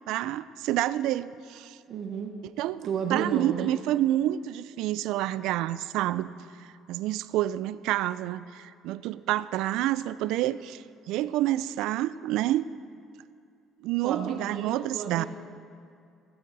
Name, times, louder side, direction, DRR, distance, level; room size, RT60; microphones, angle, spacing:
voice 1, 0.1-1.8 2.6-6.3 6.9-12.7 13.8-15.2, right 14 dB, 80° right, 17 dB, 0.3 m, -28 dB
voice 2, 1.9-2.3 2.8-3.7 14.0-15.3, right 6 dB, 60° right, 4 dB, 1.1 m, -32 dB
16.0 x 9.2 x 4.1 m, 2.4 s
cardioid pair, 110°, 0 cm